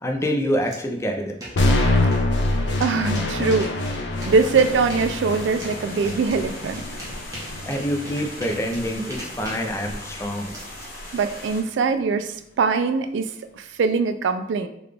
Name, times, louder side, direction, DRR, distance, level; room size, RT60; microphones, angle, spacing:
voice 1, 0.0-1.3 7.7-10.5, equal, 15° left, 2 dB, 0.4 m, -26 dB
sound 1, 0.7-0.8 1.1-11.3, right 1 dB, 20° right, 0.9 m, -40 dB
sound 2, 1.6-9.6, left 2 dB, 75° left, 0.5 m, -25 dB
voice 2, 2.8-3.7 4.3-6.8 11.1-14.7, right 4 dB, 85° right, 9 dB, 0.3 m, -22 dB
sound 3, 4.3-11.6, left 1 dB, 55° left, 1.0 m, -39 dB
3.7 x 2.3 x 3.3 m, 0.78 s
head